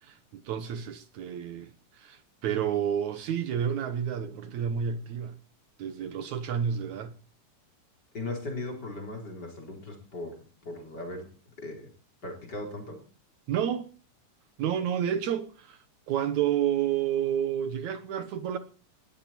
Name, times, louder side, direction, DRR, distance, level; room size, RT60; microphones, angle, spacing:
voice 1, 0.5-5.4 5.8-7.1 13.5-13.9 14.6-15.8 16.1-18.6, right 9 dB, 70° right, 2.3 m, -30 dB
voice 2, 8.1-10.4 10.7-11.9 12.2-13.0, left 2 dB, 30° left, 4.3 m, -38 dB
20.0 x 14.0 x 4.4 m
omnidirectional pair, 3.7 m